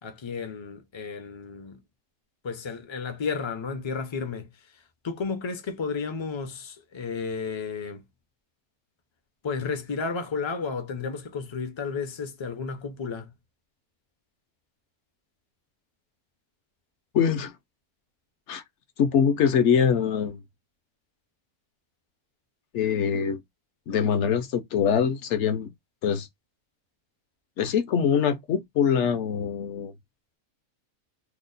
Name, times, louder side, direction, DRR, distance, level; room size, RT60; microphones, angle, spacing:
voice 1, 0.0-1.8 2.4-4.5 5.0-8.0 9.4-13.3, left 5 dB, 45° left, 0.3 m, -32 dB
voice 2, 17.1-17.5 18.5-18.6 19.0-20.4 22.7-23.4 23.9-25.7 26.0-26.3 27.6-29.9, left 7 dB, 65° left, 0.8 m, -23 dB
2.9 x 2.1 x 3.8 m
omnidirectional pair, 1.6 m